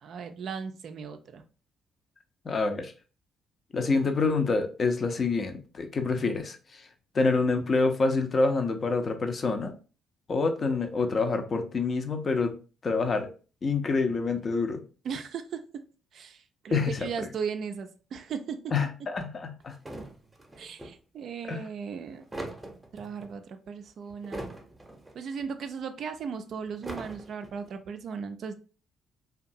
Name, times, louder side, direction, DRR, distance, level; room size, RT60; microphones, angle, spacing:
voice 1, 0.0-1.4 15.0-15.8 16.1-18.7 20.6-22.2 22.9-24.5 25.1-28.5, right 6 dB, 55° right, 7 dB, 0.3 m, -37 dB
voice 2, 2.4-2.9 3.7-6.9 7.1-9.7 10.3-12.5 12.8-13.3 13.6-14.8 16.7-17.1 18.7-19.8 21.5-21.7, left 4 dB, 45° left, 6 dB, 0.5 m, -27 dB
sound 1, 19.7-20.9 22.0-23.3 24.1-25.1 25.4-25.5 26.7-27.7, right 1 dB, 15° right, 0.6 m, -41 dB
2.6 x 2.3 x 2.6 m, 0.36 s
hypercardioid pair, 45°, 0 cm